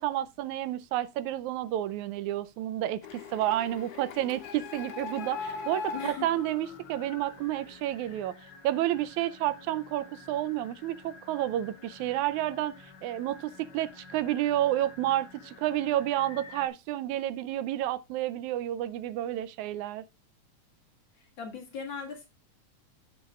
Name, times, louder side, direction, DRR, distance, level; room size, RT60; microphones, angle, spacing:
voice 1, 0.0-8.4 8.6-12.8 13.0-20.1, right 13 dB, 85° right, 2.0 m, -30 dB
Printer, 3.0-7.6, left 5 dB, 90° left, 2.7 m, -40 dB
sound 1, 5.2-16.7, left 4 dB, 65° left, 3.0 m, -51 dB
voice 2, 5.9-6.3 21.2-22.3, left 6 dB, 45° left, 2.2 m, -39 dB
16.0 x 6.3 x 2.3 m
omnidirectional pair, 3.3 m